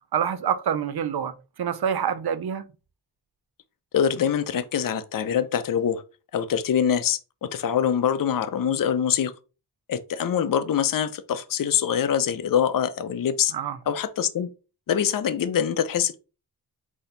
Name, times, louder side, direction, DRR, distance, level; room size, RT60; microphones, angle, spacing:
voice 1, 0.1-1.3 1.6-2.6 13.5-13.8, right 8 dB, 70° right, 0.6 m, -26 dB
voice 2, 3.9-6.0 6.3-9.3 9.9-13.5 13.9-14.5 14.9-16.2, left 8 dB, 55° left, 0.5 m, -24 dB
4.2 x 2.8 x 3.9 m
cardioid pair, 50°, 39 cm